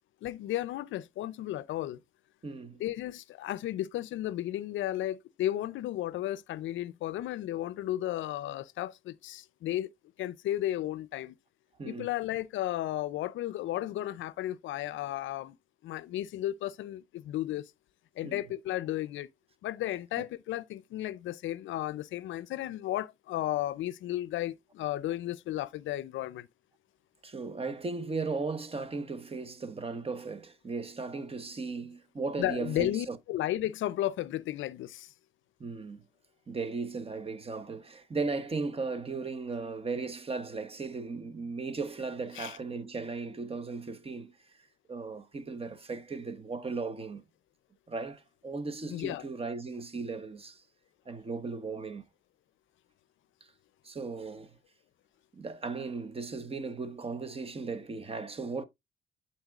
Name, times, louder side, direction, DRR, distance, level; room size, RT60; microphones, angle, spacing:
voice 1, 0.2-2.0 2.8-9.9 10.2-11.3 11.9-15.6 15.8-17.7 18.2-19.3 19.6-26.5 32.4-35.1 42.4-42.5 48.9-49.2, left 14 dB, 80° left, 0.5 m, -34 dB
voice 2, 2.4-2.8 11.8-12.1 18.2-18.4 20.2-20.3 27.2-33.2 35.6-36.0 36.5-44.4 44.9-47.2 47.9-50.6 51.1-52.0 53.8-54.5 55.3-58.6, right 4 dB, 30° right, 1.0 m, -36 dB
11.0 x 4.3 x 2.4 m
cardioid pair, 90°, 20 cm